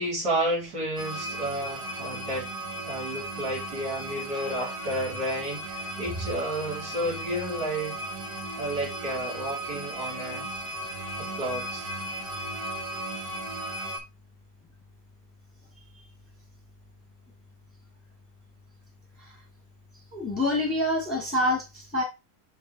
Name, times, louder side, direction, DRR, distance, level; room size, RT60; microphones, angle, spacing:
voice 1, 0.0-2.5 2.8-8.0 8.6-10.5 11.2-11.9, right 1 dB, 70° right, 4.1 m, -31 dB
sound 1, 1.0-14.0, right 1 dB, 30° right, 1.7 m, -36 dB
voice 2, 20.1-22.0, left 1 dB, 5° left, 2.2 m, -27 dB
6.9 x 6.1 x 2.9 m
omnidirectional pair, 1.8 m